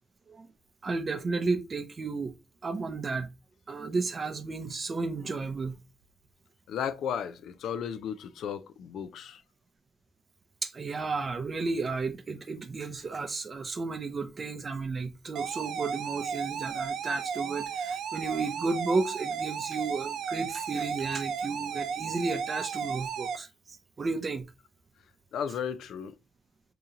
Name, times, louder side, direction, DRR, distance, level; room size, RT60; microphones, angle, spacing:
voice 1, 0.8-2.3 2.6-3.3 3.7-5.8 10.6-24.5, right 3 dB, 30° right, 0.5 m, -33 dB
voice 2, 6.7-9.4 25.3-26.2, left 8 dB, 85° left, 0.4 m, -34 dB
sound 1, 15.3-23.4, right 6 dB, 85° right, 0.5 m, -34 dB
3.8 x 2.8 x 2.7 m
wide cardioid pair, 155°, 0 cm